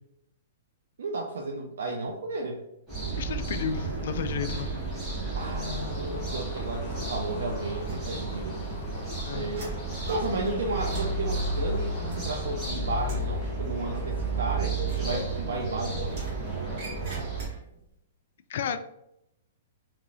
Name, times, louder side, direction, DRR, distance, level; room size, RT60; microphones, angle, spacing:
voice 1, 1.0-2.6 5.4-8.6 9.3-9.7 10.1-16.2, right 2 dB, 85° right, 0 dB, 0.5 m, -33 dB
sound 1, 2.9-17.5, right 2 dB, 15° right, 1.2 m, -32 dB
voice 2, 3.2-4.7 9.2-9.5 18.5-18.8, left 7 dB, 60° left, 10 dB, 0.3 m, -32 dB
sound 2, 5.4-12.7, left 3 dB, 35° left, 0.8 m, -45 dB
sound 3, 7.9-8.6 8.9-12.7 13.0-13.4 14.8-15.7 16.1-17.9, right 2 dB, 40° right, 1.3 m, -46 dB
3.0 x 2.9 x 2.6 m, 0.82 s
hypercardioid pair, 155°, 0 cm